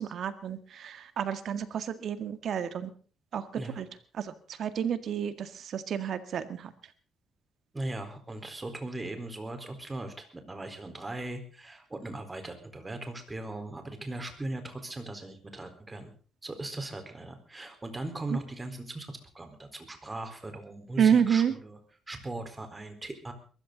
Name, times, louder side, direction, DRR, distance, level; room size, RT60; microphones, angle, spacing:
voice 1, 0.0-2.9 3.3-3.9 4.1-6.7 18.3-18.4 21.0-21.5, right 8 dB, 65° right, 12 dB, 1.9 m, -29 dB
voice 2, 7.7-16.1 16.4-21.8 22.1-23.3, right 2 dB, 20° right, 7 dB, 4.2 m, -39 dB
22.0 x 14.5 x 4.0 m, 0.39 s
cardioid pair, 90°, 0 cm